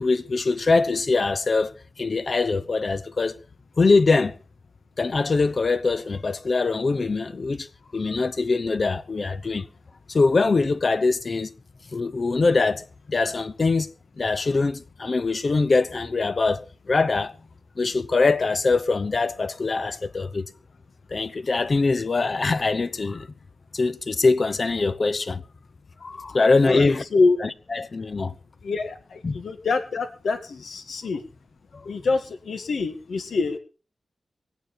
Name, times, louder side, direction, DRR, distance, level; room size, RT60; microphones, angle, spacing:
voice 1, 0.0-1.7 2.0-3.4 3.8-4.3 5.0-7.7 7.9-9.7 10.1-11.5 11.9-13.9 14.2-17.4 17.8-20.5 21.1-23.3 23.7-25.4 26.0-27.0 27.4-28.3 29.2-29.4 31.7-31.9, left 3 dB, 40° left, 0.7 m, -23 dB
voice 2, 26.6-27.4 28.6-31.2 31.8-33.6, left 4 dB, 80° left, 2.0 m, -25 dB
23.0 x 9.2 x 4.3 m
wide cardioid pair, 150°, 0 cm